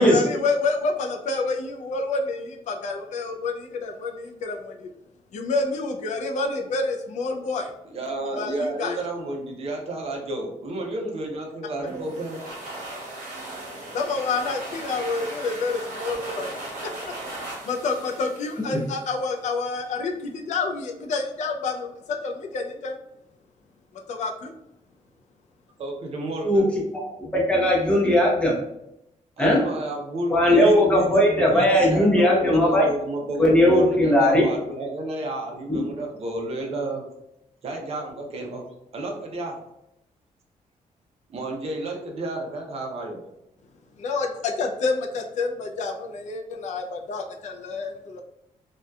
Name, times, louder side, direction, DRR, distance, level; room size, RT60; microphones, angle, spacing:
voice 1, 0.0-4.9 5.3-7.7 8.4-9.0 13.9-17.1 17.6-23.0 24.1-24.5 44.0-48.2, left 3 dB, 65° left, 2 dB, 0.4 m, -28 dB
voice 2, 7.9-12.4 25.8-26.7 29.4-37.0 37.6-38.6 38.9-39.6 41.3-43.2, right 1 dB, 50° right, 1 dB, 0.5 m, -31 dB
sound 1, 11.9-19.3, right 2 dB, 85° right, 0.8 m, -37 dB
voice 3, 27.2-28.6 29.4-29.6 30.3-32.9 33.4-34.5 35.7-35.8, equal, 10° left, -3 dB, 0.6 m, -18 dB
2.7 x 2.2 x 2.2 m, 0.85 s
wide cardioid pair, 145°, 13 cm